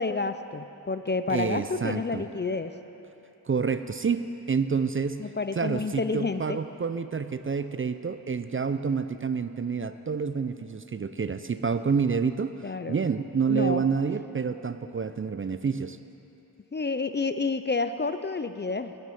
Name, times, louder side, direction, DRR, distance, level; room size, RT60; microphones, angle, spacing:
voice 1, 0.0-2.7 5.2-6.6 12.6-13.0 13.5-13.8 16.7-18.9, left 4 dB, 30° left, 10 dB, 0.4 m, -29 dB
voice 2, 1.3-2.2 3.5-5.2 5.6-12.6 12.9-16.0, right 5 dB, 35° right, 11 dB, 0.4 m, -28 dB
9.6 x 8.9 x 6.9 m, 2.9 s
cardioid pair, 45°, 38 cm